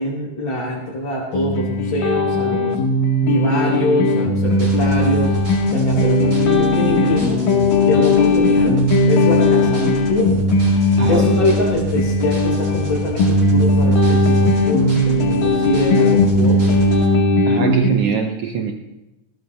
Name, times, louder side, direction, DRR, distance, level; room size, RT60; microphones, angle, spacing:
voice 1, 0.0-2.7 3.2-5.4 5.7-7.4 7.8-8.8 9.1-10.4 11.1-16.8, left 1 dB, 40° left, -5 dB, 4.0 m, -23 dB
sound 1, 1.3-17.9, left 2 dB, 85° left, 3.1 m, -17 dB
sound 2, 4.5-17.1, right 1 dB, 25° right, 6.0 m, -34 dB
voice 2, 11.0-11.3 17.5-18.7, right 6 dB, 85° right, 3 dB, 1.3 m, -22 dB
21.0 x 18.0 x 2.2 m, 1.0 s
omnidirectional pair, 3.8 m